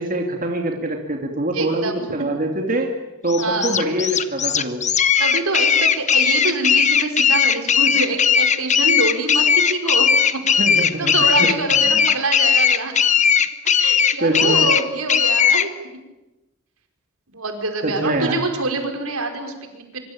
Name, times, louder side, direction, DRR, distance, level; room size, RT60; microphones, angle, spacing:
voice 1, 0.0-2.9 3.2-4.8 10.6-11.5 11.9-12.0 14.2-14.7 17.8-18.5, right 1 dB, 40° right, 2 dB, 2.6 m, -24 dB
voice 2, 1.5-2.0 3.4-3.8 5.2-10.6 11.0-12.9 13.8-15.7 17.3-20.0, right 3 dB, 85° right, 4 dB, 5.0 m, -25 dB
sound 1, 3.3-15.7, left 7 dB, 35° left, 1.1 m, -17 dB
25.0 x 24.5 x 8.8 m, 1.0 s
head